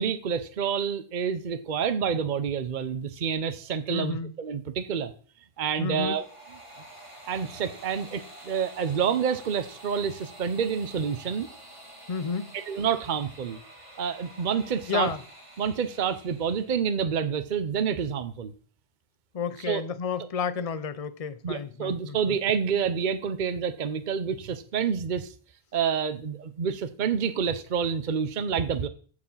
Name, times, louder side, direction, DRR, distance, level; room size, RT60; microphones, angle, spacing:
voice 1, 0.0-5.1 5.6-6.2 7.3-11.5 12.5-13.6 14.0-15.1 15.6-18.5 19.7-19.8 21.4-25.3 25.7-28.9, right 7 dB, 50° right, 0.9 m, -28 dB
voice 2, 3.9-4.3 5.8-6.2 12.1-12.6 14.9-15.2 19.3-22.4, left 6 dB, 40° left, 0.7 m, -31 dB
sound 1, 5.7-16.8, right 1 dB, 30° right, 2.6 m, -48 dB
14.5 x 4.9 x 5.5 m
omnidirectional pair, 1.0 m